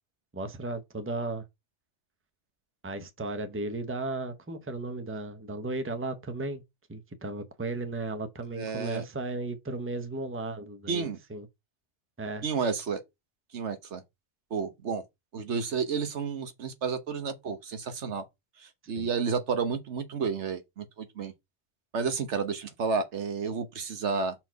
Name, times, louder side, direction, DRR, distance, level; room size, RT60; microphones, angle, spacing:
voice 1, 0.3-1.4 2.8-6.6 6.9-11.5 12.2-12.5 18.8-19.1, right 2 dB, 15° right, 0.8 m, -35 dB
voice 2, 8.5-9.0 10.9-11.2 12.4-13.0 13.5-14.0 14.5-15.0 15.3-18.2 18.6-21.3 21.9-24.3, right 5 dB, 80° right, 1.4 m, -31 dB
5.8 x 4.5 x 4.5 m
omnidirectional pair, 1.2 m